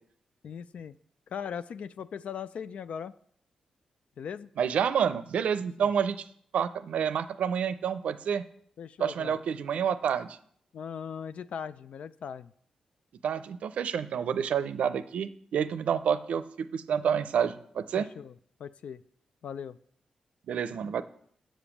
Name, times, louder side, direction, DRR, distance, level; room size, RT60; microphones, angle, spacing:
voice 1, 0.4-1.0 1.3-3.1 4.2-4.5 5.8-5.9 8.8-9.4 10.7-12.5 18.0-18.3 18.6-19.0 19.4-19.8, left 7 dB, 75° left, 14 dB, 0.3 m, -39 dB
voice 2, 4.6-6.2 6.5-8.4 9.0-10.4 13.2-16.4 16.7-18.1 20.5-21.0, right 8 dB, 80° right, 13 dB, 0.5 m, -28 dB
7.4 x 5.1 x 7.1 m, 0.63 s
supercardioid pair, 45°, 2 cm